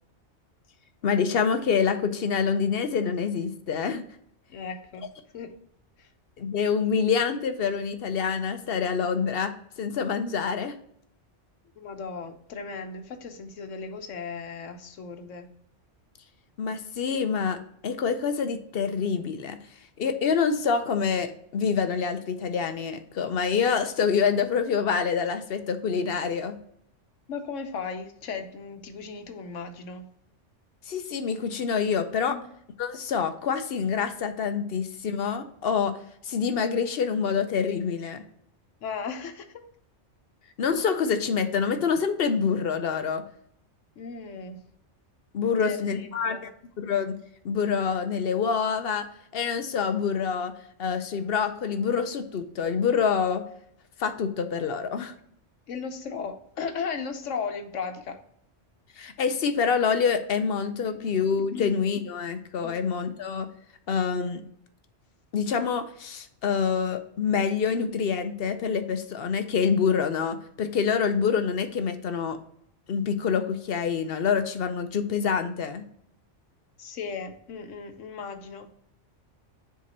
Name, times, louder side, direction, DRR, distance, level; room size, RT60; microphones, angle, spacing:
voice 1, 1.0-4.0 6.4-10.7 16.6-17.6 17.8-19.6 20.0-26.6 30.9-32.4 32.8-35.9 36.2-38.2 40.6-43.2 45.3-46.4 46.8-47.1 47.4-49.1 49.3-50.5 50.8-53.4 54.0-55.1 59.0-63.5 63.9-64.4 65.3-72.4 72.9-75.8, left 6 dB, 60° left, 8 dB, 0.8 m, -26 dB
voice 2, 4.5-5.1 5.3-5.5 6.0-6.1 11.8-15.5 27.3-30.0 32.3-32.4 38.8-39.6 44.0-44.6 45.6-46.5 55.7-58.2 60.9-61.1 61.5-61.8 62.6-62.8 76.8-78.7, left 5 dB, 85° left, 7 dB, 1.2 m, -36 dB
6.9 x 3.8 x 4.2 m, 0.69 s
omnidirectional pair, 1.2 m